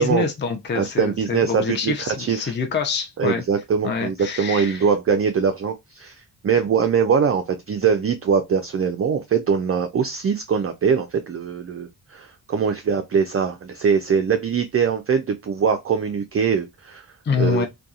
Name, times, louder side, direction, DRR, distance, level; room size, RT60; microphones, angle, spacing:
voice 1, 0.0-3.4 3.8-4.9 17.2-17.7, left 5 dB, 25° left, 0.5 m, -25 dB
voice 2, 0.8-2.5 3.2-17.1 17.4-17.7, right 6 dB, 30° right, 0.4 m, -22 dB
2.7 x 2.3 x 2.4 m
cardioid pair, 50°, 48 cm